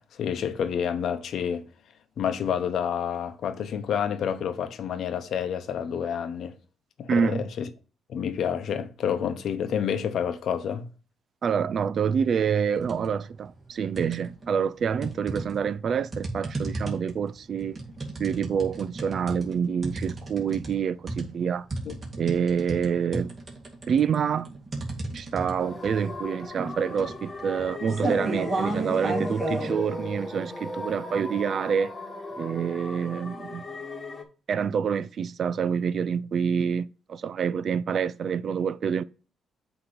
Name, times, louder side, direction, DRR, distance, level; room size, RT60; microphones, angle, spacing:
voice 1, 0.0-1.7 2.2-6.5 7.0-7.7 8.1-10.9 21.8-21.9, left 8 dB, 65° left, 0.8 m, -29 dB
voice 2, 7.1-7.4 11.4-17.8 18.2-21.7 22.2-23.3 23.9-24.5 25.1-31.9 32.4-33.6 34.5-39.0, right 7 dB, 55° right, 0.3 m, -27 dB
sound 1, 12.8-13.1 13.5-14.5 15.0-29.7, right 2 dB, 30° right, 2.0 m, -33 dB
sound 2, 25.6-34.2, left 2 dB, 25° left, 1.2 m, -37 dB
7.9 x 3.0 x 5.1 m
cardioid pair, 90°, 0 cm